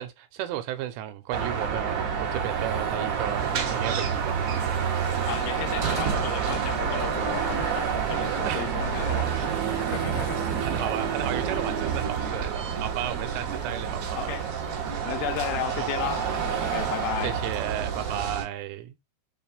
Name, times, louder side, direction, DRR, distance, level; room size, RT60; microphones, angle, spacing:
voice 1, 0.0-4.4 8.5-8.7 10.6-14.4 15.8-15.9 17.2-19.0, right 12 dB, 90° right, 2.9 m, -33 dB
Car passing by / Traffic noise roadway noise / Engine, 1.3-18.4, right 7 dB, 50° right, 1.9 m, -29 dB
sound 1, 2.8-14.8, right 7 dB, 50° left, 0.7 m, -47 dB
sound 2, 3.4-18.5, right 6 dB, 65° right, 2.9 m, -38 dB
voice 2, 5.3-9.5 9.9-10.4 14.1-16.3 16.6-17.4, left 14 dB, 85° left, 2.6 m, -34 dB
6.5 x 2.4 x 3.4 m
omnidirectional pair, 4.9 m